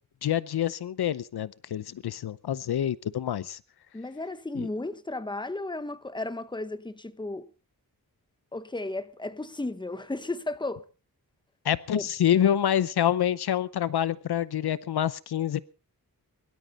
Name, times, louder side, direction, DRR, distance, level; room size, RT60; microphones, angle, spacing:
voice 1, 0.2-3.6 4.5-4.7 11.6-15.6, left 10 dB, 75° left, 0.7 m, -27 dB
voice 2, 3.9-7.5 8.5-10.8 11.9-12.1, left 2 dB, 10° left, 1.1 m, -34 dB
22.5 x 12.5 x 4.1 m
wide cardioid pair, 90°, 38 cm